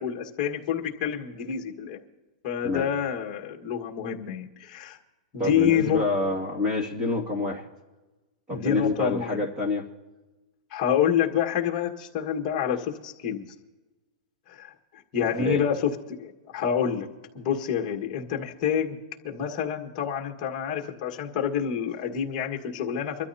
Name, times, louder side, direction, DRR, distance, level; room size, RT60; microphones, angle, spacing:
voice 1, 0.0-2.0 2.4-5.0 5.3-6.0 8.5-9.4 10.7-13.5 14.5-14.7 15.1-17.1 17.3-19.0 19.2-23.3, left 8 dB, 25° left, 1 dB, 1.7 m, -28 dB
voice 2, 5.4-7.6 8.5-9.9 15.4-15.6, left 3 dB, 15° right, 0 dB, 2.2 m, -27 dB
25.0 x 13.0 x 2.8 m, 1.2 s
supercardioid pair, 170°, 4 cm